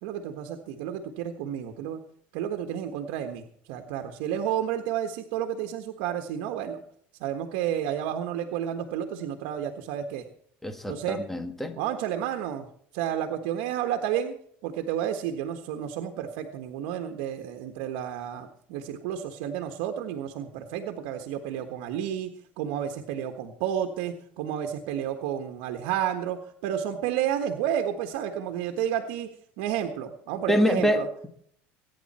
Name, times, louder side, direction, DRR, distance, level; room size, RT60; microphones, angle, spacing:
voice 1, 0.0-2.0 2.3-6.8 7.2-10.2 10.9-11.2 11.8-12.7 12.9-14.3 14.6-29.3 29.6-31.1, right 10 dB, 80° right, 5 dB, 1.5 m, -31 dB
voice 2, 10.6-11.7 30.5-31.3, equal, 5° left, 8 dB, 1.7 m, -25 dB
22.5 x 10.0 x 4.3 m, 0.63 s
cardioid pair, 145°, 5 cm